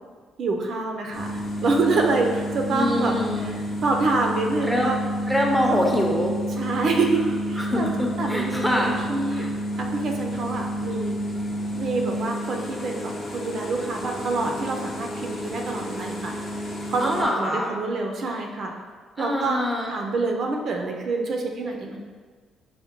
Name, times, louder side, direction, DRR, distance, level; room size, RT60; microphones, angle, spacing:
voice 1, 0.4-1.3 1.6-3.1 3.5-3.6 3.8-5.0 6.6-7.9 8.2-9.5 9.8-11.2 11.8-16.3 16.9-18.7 19.2-19.6 19.9-22.0, right 3 dB, 55° right, 2 dB, 0.4 m, -26 dB
sound 1, 1.1-17.2, equal, 40° left, 0.7 m, -30 dB
voice 2, 2.7-3.5 4.6-4.9 5.3-6.6 7.6-9.0 9.3-9.5 17.0-17.7 19.2-19.9, left 1 dB, 5° left, -1 dB, 0.5 m, -25 dB
5.5 x 2.1 x 2.9 m, 1.5 s
cardioid pair, 120°, 0 cm